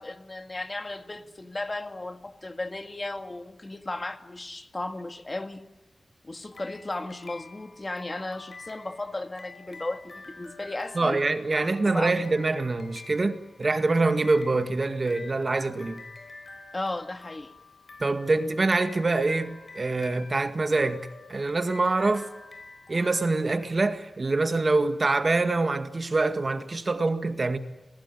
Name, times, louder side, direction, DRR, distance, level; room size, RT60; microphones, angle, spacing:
voice 1, 0.0-5.6 6.2-11.2 11.8-12.2 16.7-17.5, left 2 dB, 30° left, 1.9 m, -35 dB
sound 1, 6.5-24.2, left 3 dB, 50° left, 4.5 m, -48 dB
voice 2, 11.0-16.0 18.0-22.3 22.9-27.6, right 3 dB, 40° right, 1.8 m, -25 dB
28.0 x 20.5 x 9.8 m
wide cardioid pair, 115°, 0 cm